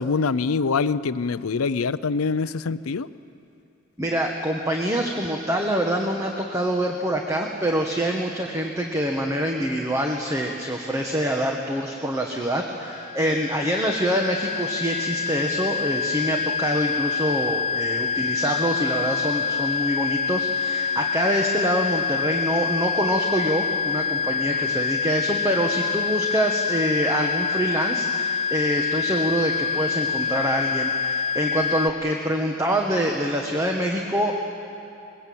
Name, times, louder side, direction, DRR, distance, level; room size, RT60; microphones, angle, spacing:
voice 1, 0.0-3.1, left 4 dB, 90° left, 15 dB, 0.6 m, -24 dB
voice 2, 4.0-34.4, equal, 15° right, 1 dB, 1.2 m, -25 dB
sound 1, 12.8-31.9, left 5 dB, 25° left, 0.5 m, -26 dB
22.0 x 21.0 x 8.6 m, 2.7 s
head